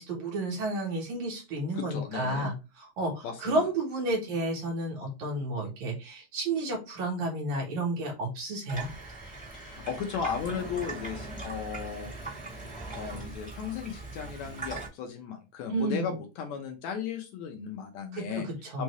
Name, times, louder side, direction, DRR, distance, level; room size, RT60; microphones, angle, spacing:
voice 1, 0.0-8.9 15.7-16.1 18.1-18.8, right 2 dB, 70° right, 0 dB, 2.5 m, -31 dB
voice 2, 1.7-2.5 3.2-3.6 9.5-12.1 12.9-18.5 18.7-18.8, left 7 dB, 75° left, 4 dB, 1.9 m, -35 dB
Water tap faucet / Sink (filling or washing), 8.7-14.9, right 3 dB, 5° right, 1.2 m, -40 dB
5.4 x 2.5 x 3.2 m, 0.28 s
omnidirectional pair, 3.6 m